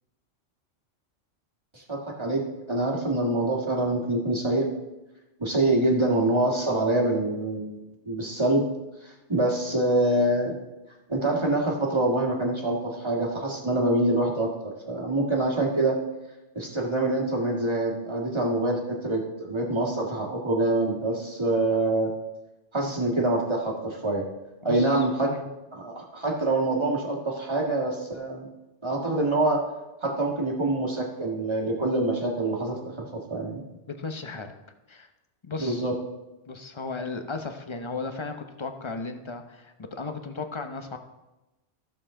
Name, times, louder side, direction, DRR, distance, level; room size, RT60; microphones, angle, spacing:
voice 1, 1.7-4.7 5.4-8.7 9.0-10.5 11.1-16.0 16.6-22.1 22.7-24.2 24.6-25.3 25.7-28.5 28.8-29.6 30.0-33.6 35.6-35.9, right 2 dB, 25° right, -1 dB, 1.8 m, -25 dB
voice 2, 24.6-25.5 34.0-34.5 34.9-35.1 35.4-35.8 36.5-41.0, left 3 dB, 30° left, 6 dB, 0.7 m, -35 dB
13.5 x 7.1 x 3.7 m, 1.0 s
omnidirectional pair, 1.2 m